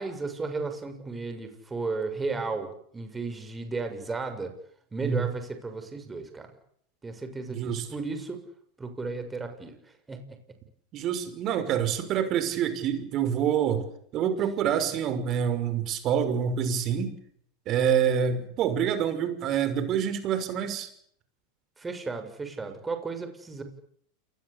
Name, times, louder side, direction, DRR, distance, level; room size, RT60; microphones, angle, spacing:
voice 1, 0.0-4.5 4.9-6.5 7.0-8.4 8.8-9.8 10.1-10.4 21.8-23.6, right 3 dB, 15° right, 7 dB, 6.6 m, -34 dB
voice 2, 7.5-7.9 10.9-13.8 14.1-17.1 17.7-20.9, right 8 dB, 40° right, 11 dB, 5.9 m, -26 dB
28.5 x 20.5 x 8.6 m, 0.67 s
hypercardioid pair, 105°, 0 cm